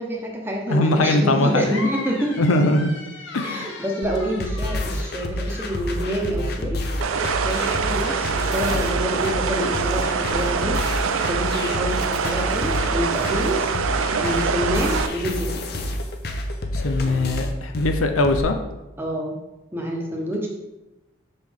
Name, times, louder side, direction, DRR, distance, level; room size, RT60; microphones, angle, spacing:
voice 1, 0.0-2.4 3.4-6.8 7.4-13.7 14.2-15.7 19.0-19.4 19.7-20.5, equal, 10° right, -1 dB, 0.9 m, -27 dB
voice 2, 0.7-1.7 2.4-2.9 3.3-3.8 16.7-18.5, left 2 dB, 85° left, 6 dB, 0.6 m, -21 dB
sound 1, 1.5-5.9, left 2 dB, 65° left, 1.0 m, -37 dB
sound 2, 4.0-18.4, left 1 dB, 50° left, 0.7 m, -28 dB
sound 3, 7.0-15.1, right 6 dB, 85° right, 0.5 m, -25 dB
6.1 x 5.3 x 3.6 m, 1.0 s
head